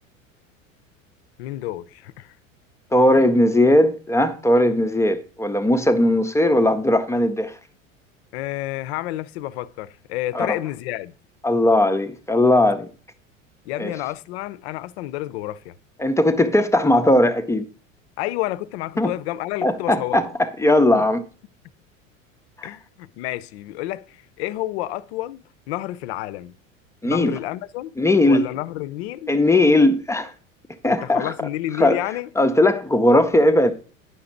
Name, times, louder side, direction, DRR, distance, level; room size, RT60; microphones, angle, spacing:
voice 1, 1.4-2.3 3.1-3.3 8.3-11.1 13.7-15.7 18.2-20.3 21.0-21.1 22.6-26.5 27.0-27.9 28.2-29.3 30.9-32.3, left 15 dB, 55° left, 0.6 m, -30 dB
voice 2, 2.9-7.5 10.3-10.5 11.4-12.9 13.8-13.9 16.0-17.7 19.0-19.1 19.6-21.2 27.0-27.3 28.0-28.5 29.3-30.3 30.8-31.3 31.8-32.0 32.4-33.7, left 1 dB, 5° left, 0.5 m, -18 dB
9.8 x 5.8 x 3.8 m
figure-of-eight pair, 80°, 40 cm